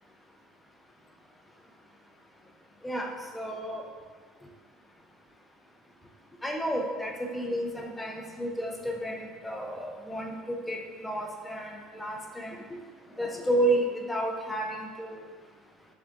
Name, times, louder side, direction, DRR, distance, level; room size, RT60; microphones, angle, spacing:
voice 1, 2.8-3.9 6.4-12.8 13.2-15.3, right 1 dB, 5° left, 1 dB, 0.4 m, -31 dB
3.6 x 3.5 x 2.5 m, 1.5 s
cardioid pair, 145°, 0 cm